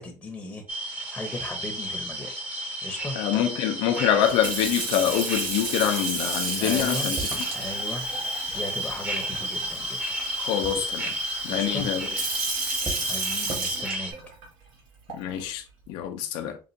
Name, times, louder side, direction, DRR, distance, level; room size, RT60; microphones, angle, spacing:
voice 1, 0.0-2.3 2.8-3.1 6.6-7.2 7.5-8.0 8.5-10.0 11.5-11.9 13.0-14.1, left 2 dB, 10° left, 0.9 m, -36 dB
sound 1, 0.7-14.1, right 1 dB, 20° right, 1.0 m, -32 dB
voice 2, 3.1-7.2 10.4-11.1 11.4-12.1 15.1-16.6, left 10 dB, 80° left, 0.6 m, -25 dB
Sink (filling or washing) / Fill (with liquid), 4.2-14.4 15.1-15.4, right 3 dB, 75° right, 2.1 m, -33 dB
sound 2, 7.2-8.4 9.0-10.3 10.6-13.6, right 3 dB, 35° right, 1.7 m, -40 dB
5.3 x 2.4 x 2.7 m
cardioid pair, 125°, 8 cm